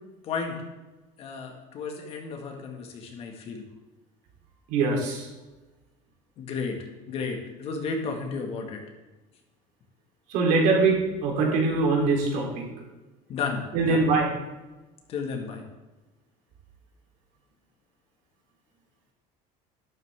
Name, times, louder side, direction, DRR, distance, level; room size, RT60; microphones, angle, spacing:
voice 1, 0.2-0.6 1.2-3.6 6.4-6.8 7.1-8.8 13.3-14.0 15.1-15.6, left 5 dB, 40° left, 3 dB, 1.9 m, -33 dB
voice 2, 4.7-5.3 10.3-12.7 13.7-14.3, right 3 dB, 60° right, -1 dB, 3.5 m, -23 dB
12.0 x 12.0 x 3.7 m, 1.1 s
cardioid pair, 165°, 16 cm